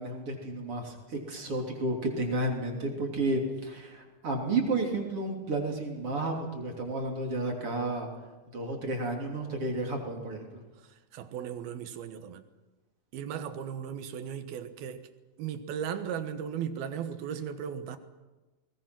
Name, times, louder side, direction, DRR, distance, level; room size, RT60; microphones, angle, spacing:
voice 1, 0.0-8.1 8.5-10.6, right 2 dB, 40° right, 3.7 m, -32 dB
voice 2, 10.8-12.4 13.1-15.1 15.4-18.0, right 8 dB, 80° right, 3.2 m, -36 dB
29.5 x 21.0 x 6.1 m
omnidirectional pair, 4.3 m